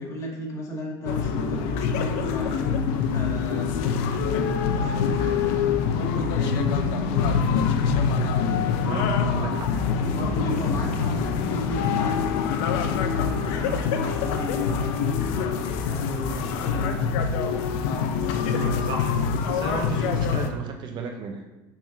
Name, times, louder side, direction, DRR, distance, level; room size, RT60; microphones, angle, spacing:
voice 1, 0.0-5.6 6.0-7.5 10.0-17.0, left 1 dB, 30° left, -4 dB, 2.2 m, -34 dB
sound 1, 1.1-20.5, left 6 dB, 70° left, 0.7 m, -25 dB
voice 2, 8.8-9.8 18.5-19.2 19.5-21.5, right 5 dB, 45° right, 4 dB, 0.9 m, -34 dB
6.0 x 4.3 x 6.0 m, 1.0 s
supercardioid pair, 110°, 11 cm